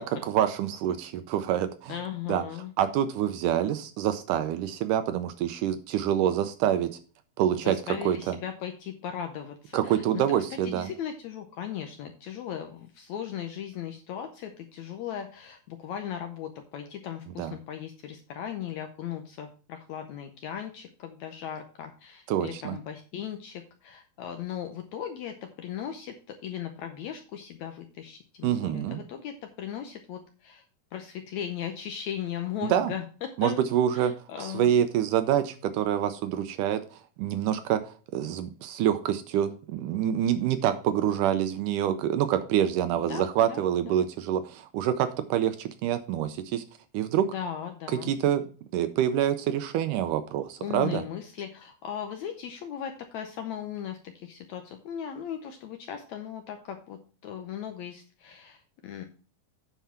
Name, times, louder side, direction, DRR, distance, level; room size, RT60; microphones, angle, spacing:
voice 1, 0.3-2.0 2.3-2.4 2.8-6.9 7.4-7.8 8.1-8.4 9.7-10.9 17.4-17.5 22.3-22.8 28.4-29.0 32.7-32.9 33.4-34.1 34.4-46.6 46.9-47.3 48.0-48.4 48.7-51.0, right 10 dB, 80° right, 10 dB, 2.0 m, -26 dB
voice 2, 1.9-2.7 7.5-10.2 10.5-30.6 30.9-33.7 33.9-34.7 42.9-44.0 47.3-48.2 50.6-59.0, left 9 dB, 75° left, 5 dB, 1.7 m, -37 dB
9.2 x 4.7 x 5.7 m, 0.38 s
omnidirectional pair, 4.0 m